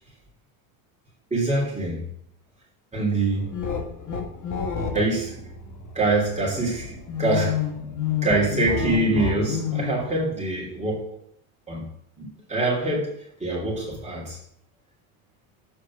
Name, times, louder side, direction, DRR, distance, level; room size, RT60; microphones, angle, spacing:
voice 1, 1.3-2.0 2.9-3.5 4.9-5.4 5.9-7.6 8.2-11.1 11.7-11.9 12.2-13.1 13.4-14.4, right 2 dB, 15° right, -5 dB, 3.2 m, -24 dB
sound 1, 3.3-10.1, left 7 dB, 40° left, 1.7 m, -30 dB
7.7 x 4.9 x 6.3 m, 0.70 s
supercardioid pair, 100°, 47 cm